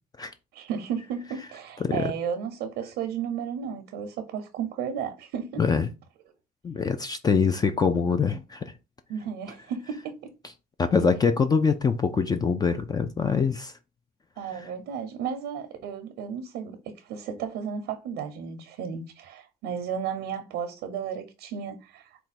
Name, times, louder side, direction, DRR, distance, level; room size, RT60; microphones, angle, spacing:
voice 1, 0.5-5.7 9.1-10.3 14.4-22.3, right 7 dB, 90° right, 0.7 m, -33 dB
voice 2, 1.8-2.1 5.6-5.9 6.6-8.6 10.8-13.7, left 5 dB, 25° left, 0.4 m, -24 dB
4.4 x 2.2 x 4.1 m
cardioid pair, 110°, 17 cm